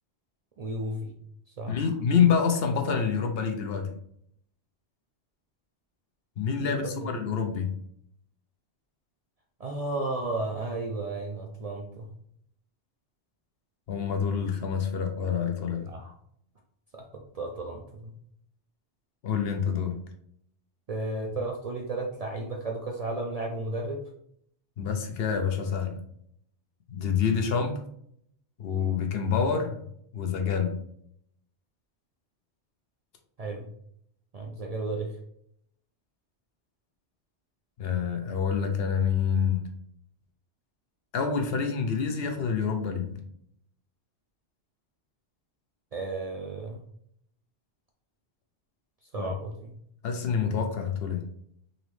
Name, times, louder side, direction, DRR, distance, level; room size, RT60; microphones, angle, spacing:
voice 1, 0.6-1.2 1.6-1.9 6.6-7.1 9.6-12.1 15.9-16.1 16.9-18.1 20.9-24.0 33.4-33.7 34.3-35.1 45.9-46.8 49.1-49.7, right 2 dB, 50° right, 0 dB, 0.5 m, -33 dB
voice 2, 1.7-3.9 6.4-7.7 13.9-15.9 19.2-20.0 24.8-26.0 26.9-27.7 28.6-29.8 30.1-30.7 37.8-39.6 41.1-43.2 49.2-49.3 50.0-51.2, left 6 dB, 65° left, 4 dB, 0.8 m, -27 dB
4.0 x 3.0 x 3.1 m, 0.69 s
omnidirectional pair, 1.1 m